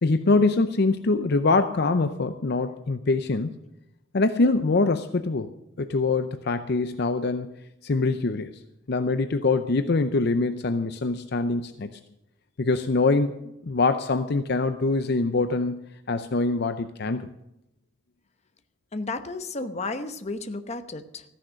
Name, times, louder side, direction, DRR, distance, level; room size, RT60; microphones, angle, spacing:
voice 1, 0.0-3.6 4.1-5.5 5.8-7.5 7.8-8.5 8.9-11.9 12.6-13.4 13.6-17.3, left 3 dB, 55° left, 9 dB, 0.6 m, -24 dB
voice 2, 18.9-21.2, left 3 dB, 35° left, 8 dB, 0.9 m, -33 dB
14.5 x 10.0 x 6.4 m, 0.86 s
head